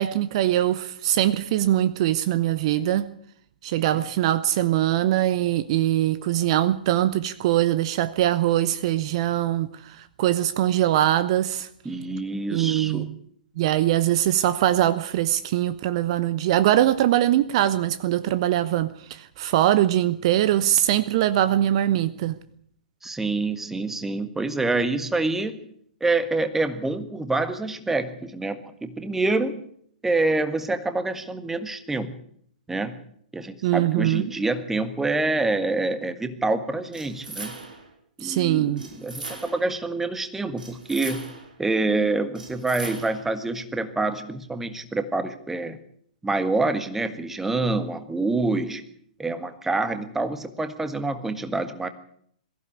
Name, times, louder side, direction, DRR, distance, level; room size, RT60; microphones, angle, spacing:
voice 1, 0.0-3.1 3.6-11.7 12.5-13.2 13.6-22.4 33.6-34.2 38.2-38.9, right 13 dB, 40° right, 0.9 m, -22 dB
voice 2, 11.8-13.1 23.0-25.7 26.0-29.6 30.0-32.1 32.7-33.0 33.3-37.5 38.2-41.2 41.6-45.8 46.2-48.8 49.2-51.9, right 2 dB, 5° right, 1.6 m, -26 dB
sound 1, 36.9-37.9 38.8-39.7 40.6-41.6 42.3-43.3, right 3 dB, 70° right, 5.3 m, -39 dB
22.0 x 15.0 x 8.6 m
figure-of-eight pair, 115°, 5 cm